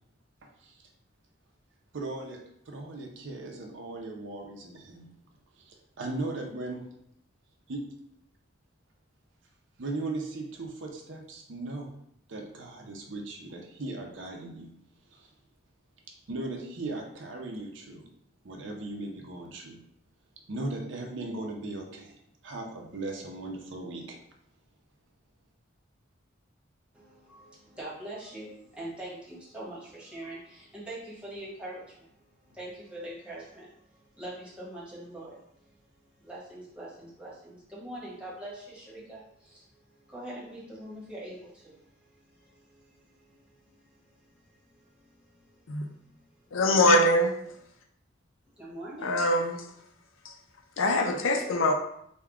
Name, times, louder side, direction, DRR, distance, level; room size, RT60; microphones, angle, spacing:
voice 1, 0.4-0.9 1.9-2.4 2.7-5.1 5.6-6.9 7.7-7.8 9.8-11.9 12.3-14.7 15.1-15.3 16.3-18.1 18.4-19.8 20.5-22.2 22.4-24.2, right 2 dB, 65° right, 0.6 m, -38 dB
voice 2, 26.9-32.1 32.4-35.7 36.2-46.6 48.6-49.2, right 1 dB, 5° right, 1.2 m, -44 dB
voice 3, 46.5-47.5 49.0-49.6 50.8-51.7, left 1 dB, 90° left, 0.5 m, -23 dB
3.5 x 2.2 x 3.4 m
head